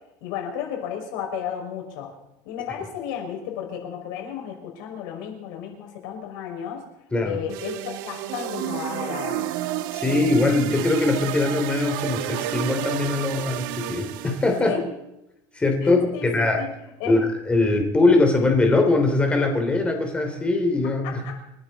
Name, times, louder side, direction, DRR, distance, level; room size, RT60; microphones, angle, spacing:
voice 1, 0.2-2.1 2.5-6.8 7.2-9.5 14.6-14.8 15.8-16.7 17.0-17.2 20.8-21.3, left 8 dB, 80° left, 1 dB, 5.9 m, -33 dB
sound 1, 7.5-14.6, right 12 dB, 90° right, 1.2 m, -31 dB
voice 2, 9.9-14.8 15.5-16.6 17.1-17.2 17.5-21.2, left 2 dB, 10° left, 3 dB, 3.2 m, -21 dB
29.0 x 12.0 x 4.2 m, 0.90 s
cardioid pair, 170°, 11 cm